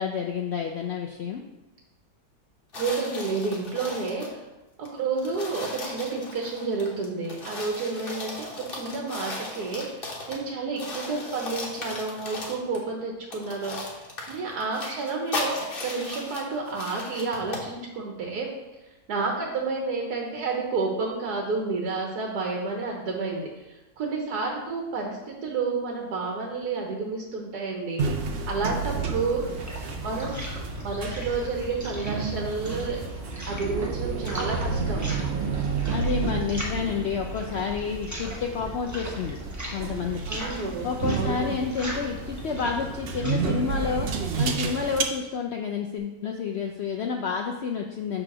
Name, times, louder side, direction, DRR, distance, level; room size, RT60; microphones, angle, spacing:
voice 1, 0.0-1.4 35.9-39.4 39.7-40.4 40.8-48.2, left 6 dB, 70° left, 2 dB, 0.6 m, -30 dB
sound 1, 2.7-4.4 4.8-4.9 5.2-10.5 10.8-12.8 13.3-17.7, left 2 dB, 40° left, 1.2 m, -37 dB
voice 2, 2.7-4.4 4.8-18.5 19.1-28.0 28.5-29.4 30.0-33.0 33.5-35.1 40.3-41.5, right 4 dB, 90° right, 0 dB, 1.5 m, -30 dB
sound 2, 28.0-45.0, right 5 dB, 65° right, 0.6 m, -31 dB
sound 3, 29.4-45.0, right 1 dB, 15° right, 1.0 m, -38 dB
6.9 x 3.3 x 5.9 m, 1.0 s
omnidirectional pair, 1.7 m